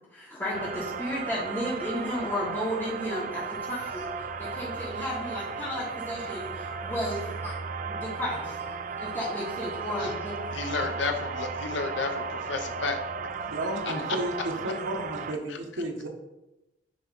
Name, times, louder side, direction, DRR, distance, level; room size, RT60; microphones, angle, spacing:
voice 1, 0.1-4.1 4.4-7.6 7.8-10.6, equal, 10° left, -11 dB, 1.5 m, -33 dB
sound 1, 0.5-15.3, right 5 dB, 45° right, 0.3 m, -35 dB
voice 2, 10.5-13.0 13.8-13.9 15.5-15.6, left 4 dB, 75° left, 5 dB, 0.8 m, -32 dB
voice 3, 13.4-16.1, right 1 dB, 85° right, 1 dB, 1.2 m, -32 dB
9.0 x 3.0 x 4.2 m, 0.98 s
head